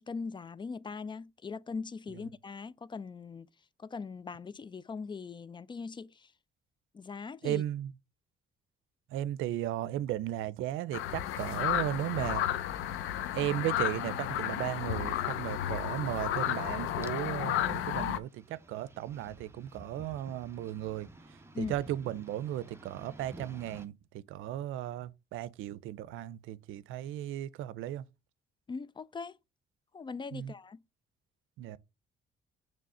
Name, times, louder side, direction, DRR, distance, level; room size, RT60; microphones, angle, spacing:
voice 1, 0.0-3.5 3.8-6.3 6.9-7.6 21.5-21.8 28.7-29.4 29.9-30.8, left 4 dB, 25° left, 0.4 m, -40 dB
voice 2, 7.4-7.9 9.1-12.4 13.3-21.1 21.6-28.0 30.3-30.5 31.6-31.8, right 13 dB, 85° right, 0.5 m, -35 dB
sound 1, 10.9-18.2, left 11 dB, 85° left, 0.6 m, -32 dB
sound 2, 12.7-23.9, right 1 dB, 15° right, 0.9 m, -54 dB
6.8 x 3.2 x 4.8 m
cardioid pair, 90°, 20 cm